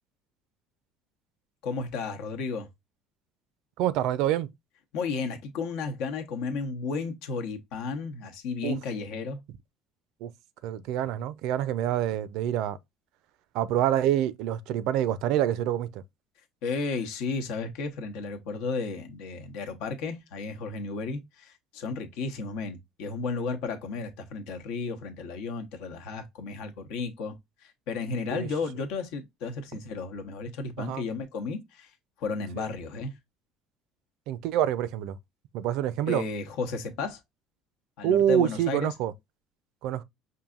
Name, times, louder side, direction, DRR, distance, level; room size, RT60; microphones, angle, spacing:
voice 1, 1.6-2.7 4.9-9.4 16.6-27.4 27.6-31.9 32.2-33.1 36.1-37.2 38.0-38.9, left 4 dB, 80° left, 0.9 m, -33 dB
voice 2, 3.8-4.5 8.6-8.8 10.2-10.3 10.6-12.8 13.5-16.0 28.3-28.5 30.8-31.0 32.6-32.7 34.3-35.2 35.5-36.2 38.0-39.1 39.8-40.0, right 11 dB, 75° right, 0.4 m, -26 dB
5.4 x 2.6 x 2.4 m
cardioid pair, 120°, 0 cm